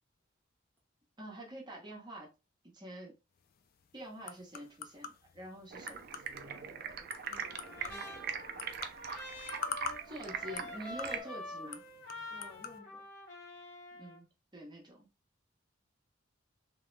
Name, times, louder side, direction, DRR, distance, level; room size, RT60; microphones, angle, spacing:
voice 1, 1.2-2.3 2.7-3.1 3.9-6.0 10.1-11.8 13.9-15.1, right 1 dB, 25° right, 0.9 m, -46 dB
sound 1, 3.4-12.8, left 5 dB, 50° left, 0.3 m, -47 dB
Stream, 5.7-11.2, right 7 dB, 50° right, 0.4 m, -42 dB
voice 2, 6.5-9.1 9.7-10.3 12.3-13.1, equal, 10° left, 0.6 m, -58 dB
Trumpet, 7.5-14.2, left 2 dB, 70° left, 1.4 m, -47 dB
2.9 x 2.1 x 3.1 m
head